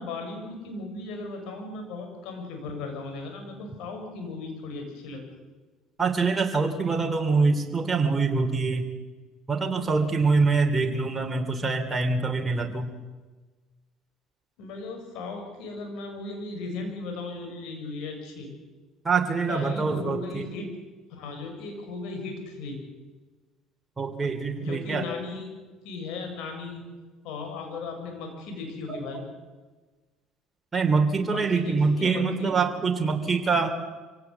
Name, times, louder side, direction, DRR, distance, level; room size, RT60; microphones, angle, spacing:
voice 1, 0.0-5.2 14.6-18.5 19.5-20.7 21.1-22.8 24.6-25.5 25.8-26.8 27.2-29.2 31.2-32.5, left 3 dB, 70° left, 4 dB, 6.9 m, -36 dB
voice 2, 6.0-8.9 9.5-12.9 19.0-20.5 24.0-25.1 28.9-29.0 30.7-33.7, right 4 dB, 20° right, 3 dB, 3.1 m, -25 dB
25.0 x 17.0 x 8.2 m, 1.3 s
supercardioid pair, 85°, 0 cm